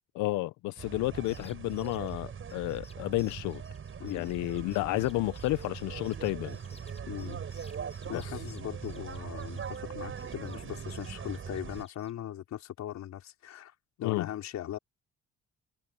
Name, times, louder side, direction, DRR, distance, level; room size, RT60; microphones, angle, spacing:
voice 1, 0.1-3.6 4.1-6.6 8.1-8.2 14.0-14.3, left 18 dB, 85° left, 0.7 m, -31 dB
sound 1, 0.8-11.8, right 7 dB, 45° right, 7.1 m, -41 dB
sound 2, 1.1-9.9 10.1-12.1, left 3 dB, 20° left, 6.6 m, -58 dB
voice 2, 4.0-4.3 7.1-7.4 8.0-13.7 14.0-14.8, left 11 dB, 70° left, 4.7 m, -39 dB
cardioid pair, 95°, 29 cm